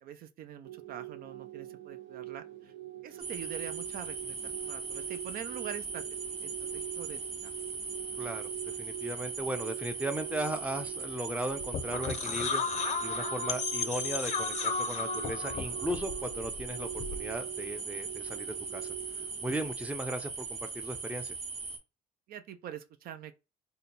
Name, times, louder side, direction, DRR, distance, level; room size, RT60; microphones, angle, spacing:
voice 1, 0.0-2.7 3.0-6.0 6.4-7.2 22.3-23.4, right 9 dB, 60° right, 0.4 m, -44 dB
sound 1, 0.6-19.7, right 16 dB, 85° right, 1.0 m, -44 dB
sound 2, 3.2-21.8, right 4 dB, 35° right, 0.8 m, -39 dB
voice 2, 8.2-8.5 8.8-12.6 13.0-18.9 19.4-21.4, right 1 dB, 10° right, 0.5 m, -37 dB
sound 3, 11.6-17.3, left 6 dB, 45° left, 0.6 m, -34 dB
2.8 x 2.2 x 3.9 m
cardioid pair, 110°, 17 cm